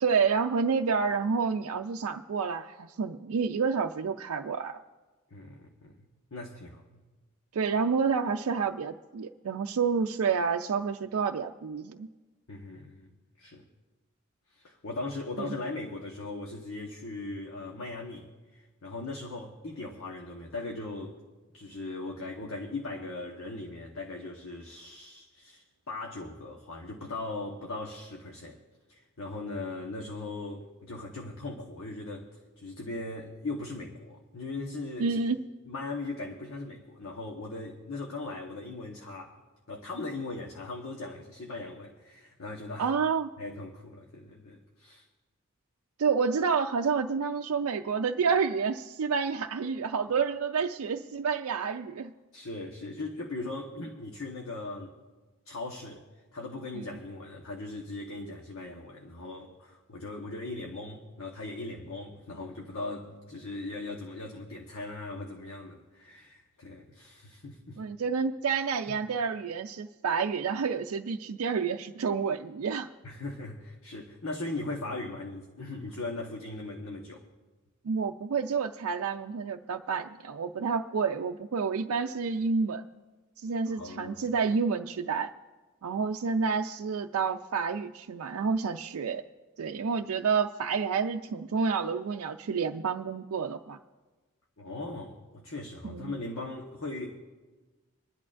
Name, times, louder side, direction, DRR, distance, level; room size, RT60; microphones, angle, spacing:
voice 1, 0.0-4.8 7.5-12.1 15.4-15.5 35.0-35.4 42.8-43.3 46.0-52.1 56.8-56.9 67.8-72.9 77.8-82.8 83.4-85.3 85.8-89.2 89.6-93.8 95.8-96.1, right 5 dB, 85° right, 0.4 m, -29 dB
voice 2, 5.3-7.0 12.5-13.1 13.4-13.6 14.5-21.2 21.5-28.6 28.9-32.3 32.6-35.2 35.7-39.4 39.7-42.9 43.4-45.0 52.3-54.9 55.5-56.0 56.3-67.8 68.9-69.0 73.0-77.3 83.7-84.2 94.6-97.2, left 2 dB, 75° left, 1.1 m, -39 dB
26.5 x 11.0 x 2.5 m
head